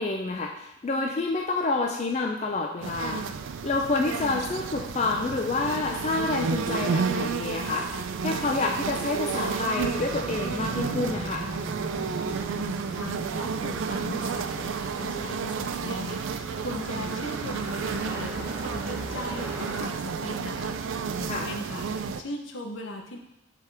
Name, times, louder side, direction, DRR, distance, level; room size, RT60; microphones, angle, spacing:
voice 1, 0.0-3.3 3.6-11.5 21.3-21.5, left 3 dB, 35° left, 1 dB, 0.4 m, -28 dB
sound 1, 2.8-22.2, right 5 dB, 80° right, 0.4 m, -31 dB
sound 2, 9.8-19.8, right 1 dB, 10° right, 0.8 m, -39 dB
voice 2, 13.0-23.2, left 1 dB, 70° left, 3 dB, 0.8 m, -39 dB
8.2 x 3.5 x 3.4 m, 0.86 s
head